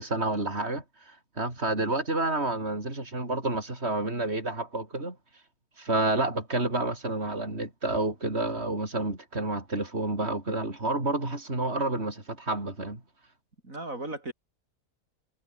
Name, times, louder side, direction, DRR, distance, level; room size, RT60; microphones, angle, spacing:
voice 1, 0.0-5.2 5.8-13.0, right 2 dB, 45° right, 5.9 m, -29 dB
voice 2, 13.6-14.3, right 2 dB, 65° right, 6.3 m, -37 dB
omnidirectional pair, 1.6 m